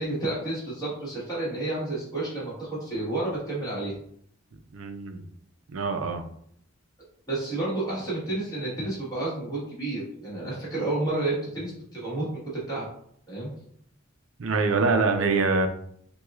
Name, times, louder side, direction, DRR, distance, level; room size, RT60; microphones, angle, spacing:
voice 1, 0.0-3.9 7.3-12.8 13.3-13.5, right 2 dB, 20° left, -7 dB, 1.5 m, -30 dB
voice 2, 4.7-5.2 5.7-6.2 14.4-15.7, right 4 dB, 85° right, 7 dB, 0.5 m, -24 dB
5.9 x 2.3 x 2.4 m, 0.66 s
head